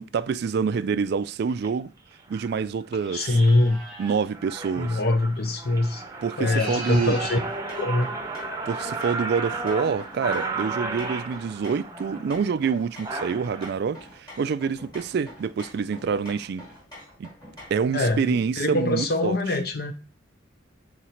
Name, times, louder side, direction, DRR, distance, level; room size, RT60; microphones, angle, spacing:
voice 1, 0.0-1.9 2.3-3.4 4.0-5.0 6.2-7.2 8.7-16.6 17.2-17.3 17.7-19.4, right 6 dB, 55° right, 0.3 m, -27 dB
sound 1, 1.5-1.7 2.3-2.6 3.1-3.5 3.9-4.0 4.3-13.7, right 3 dB, 15° right, 0.7 m, -34 dB
sound 2, 3.0-4.2 6.3-7.5, right 1 dB, 5° left, 1.4 m, -38 dB
voice 2, 3.1-3.8 4.8-6.0 6.4-7.4 7.8-8.1 17.9-19.9, left 2 dB, 55° left, 0.7 m, -23 dB
sound 3, 7.4-17.9, left 1 dB, 20° left, 2.4 m, -46 dB
6.2 x 4.0 x 4.3 m
head